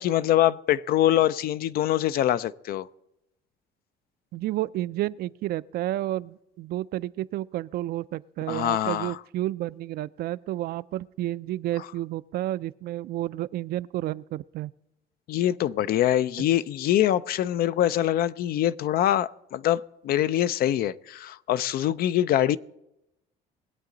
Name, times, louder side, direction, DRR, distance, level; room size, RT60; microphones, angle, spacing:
voice 1, 0.0-2.9 8.5-9.2 15.3-22.6, left 12 dB, 65° left, 0.4 m, -24 dB
voice 2, 4.3-14.7 16.4-16.5, right 15 dB, 65° right, 0.4 m, -31 dB
21.0 x 8.3 x 3.9 m
cardioid pair, 110°, 17 cm